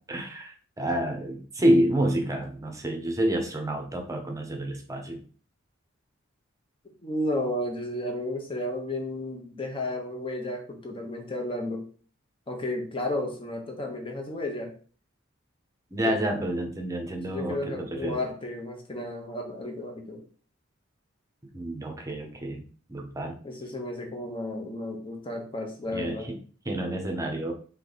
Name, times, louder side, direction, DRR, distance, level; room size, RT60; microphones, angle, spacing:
voice 1, 0.1-5.2 15.9-18.2 21.5-22.6 22.9-23.3 25.9-26.4 26.6-27.5, right 1 dB, 15° right, 2 dB, 0.8 m, -28 dB
voice 2, 7.0-11.9 12.5-14.7 16.0-16.3 17.2-20.2 23.4-26.3, left 1 dB, 25° left, 3 dB, 1.0 m, -33 dB
3.3 x 3.3 x 4.0 m, 0.42 s
head